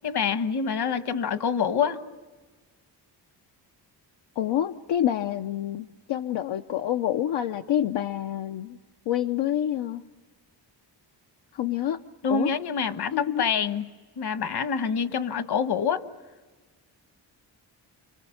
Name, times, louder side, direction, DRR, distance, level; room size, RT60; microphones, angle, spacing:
voice 1, 0.0-2.0 12.2-13.9 14.2-16.0, left 6 dB, 60° left, 11 dB, 1.3 m, -26 dB
voice 2, 4.4-8.8 9.1-10.0 11.5-12.0 12.3-12.5 13.1-13.5, left 11 dB, 80° left, 5 dB, 0.8 m, -27 dB
29.5 x 23.5 x 7.1 m, 1.3 s
wide cardioid pair, 125°, 43 cm